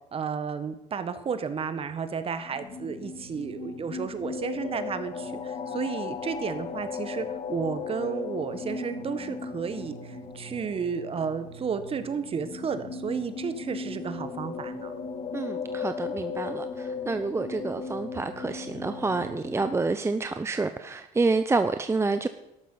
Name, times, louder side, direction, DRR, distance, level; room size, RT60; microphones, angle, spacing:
voice 1, 0.1-14.9, right 6 dB, 35° right, 11 dB, 1.5 m, -32 dB
sound 1, 2.4-19.8, left 5 dB, 40° left, 1.7 m, -37 dB
voice 2, 15.3-22.3, right 3 dB, 15° right, 9 dB, 0.7 m, -28 dB
13.0 x 12.0 x 5.6 m, 0.90 s
supercardioid pair, 90°, 16 cm